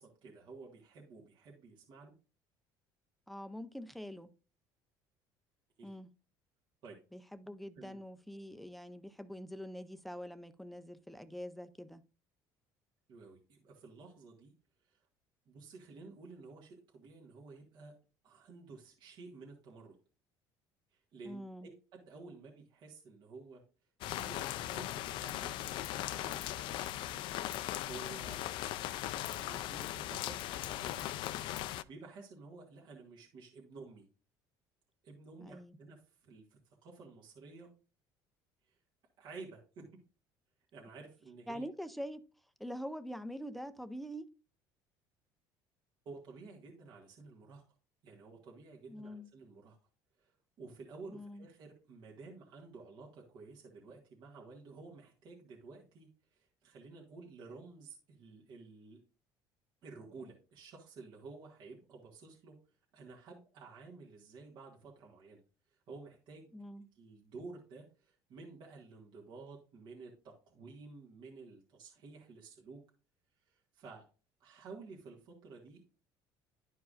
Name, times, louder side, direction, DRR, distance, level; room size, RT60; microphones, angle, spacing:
voice 1, 0.0-2.1 5.8-6.0 6.8-7.0 7.7-8.0 13.1-14.5 14.8-15.0 15.4-17.9 18.2-19.9 20.9-23.6 24.1-27.2 27.5-28.4 29.1-31.3 31.6-34.0 35.0-37.7 38.6-38.7 39.2-39.9 40.7-41.7 46.0-47.6 48.0-49.8 50.2-50.3 50.6-59.0 59.8-62.5 62.9-65.4 65.7-66.5 66.9-72.8 73.4-74.0 74.4-75.8, right 3 dB, 60° right, 1.8 m, -52 dB
voice 2, 3.3-4.3 5.8-6.1 7.1-12.0 21.2-21.7 35.4-35.8 41.5-42.2 42.6-44.3 48.9-49.3 51.1-51.4 66.5-66.9, equal, ahead, 0.5 m, -44 dB
sound 1, 24.0-31.8, left 13 dB, 65° left, 0.4 m, -39 dB
11.5 x 4.6 x 2.5 m
cardioid pair, 120°, 9 cm